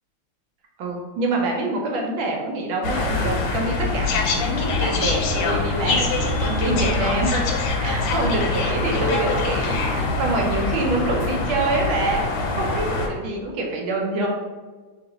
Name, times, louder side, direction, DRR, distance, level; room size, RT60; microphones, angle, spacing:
voice 1, 0.8-7.4 7.8-12.2 12.6-14.3, right 2 dB, 70° right, 0 dB, 1.2 m, -26 dB
sound 1, 2.8-13.1, left 3 dB, 90° left, 1.5 m, -24 dB
3.0 x 2.8 x 3.9 m, 1.4 s
omnidirectional pair, 2.3 m